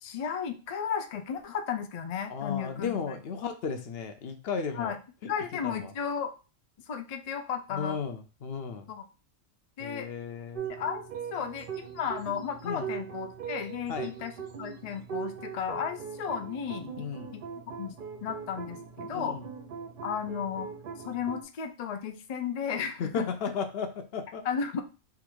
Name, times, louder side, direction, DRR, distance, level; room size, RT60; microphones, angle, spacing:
voice 1, 0.0-3.2 4.7-5.0 5.3-6.3 6.9-8.0 8.9-9.0 9.8-10.1 10.7-11.0 11.3-14.3 14.6-17.1 17.3-17.4 17.8-18.0 18.2-19.4 20.0-20.7 21.0-23.3 24.4-24.8, left 7 dB, 75° left, 6 dB, 0.3 m, -34 dB
voice 2, 2.3-4.9 5.2-5.3 5.6-5.9 7.7-8.9 9.8-10.7 12.6-12.9 13.9-14.1 17.0-17.3 19.1-19.4 23.0-24.4, left 6 dB, 60° left, 6 dB, 0.8 m, -34 dB
sound 1, 10.6-21.4, right 7 dB, 55° right, 0.6 m, -40 dB
3.6 x 2.5 x 4.5 m, 0.32 s
omnidirectional pair, 1.3 m